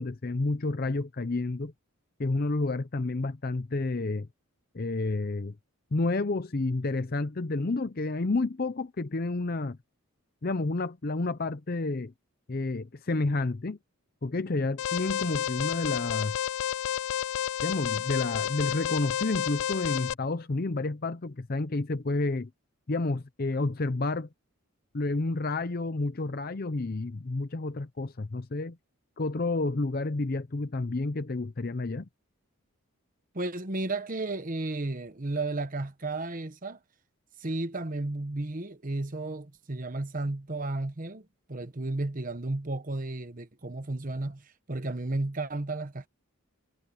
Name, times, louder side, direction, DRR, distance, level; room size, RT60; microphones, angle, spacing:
voice 1, 0.0-1.7 2.2-4.3 4.7-5.5 5.9-9.8 10.4-12.1 12.5-13.8 14.2-16.3 17.6-22.5 22.9-24.3 24.9-28.8 29.2-32.1, left 2 dB, 45° left, 0.6 m, -30 dB
Alarm, 14.8-20.1, left 10 dB, 80° left, 0.3 m, -31 dB
voice 2, 33.3-36.8 37.4-46.1, right 2 dB, 40° right, 1.1 m, -33 dB
head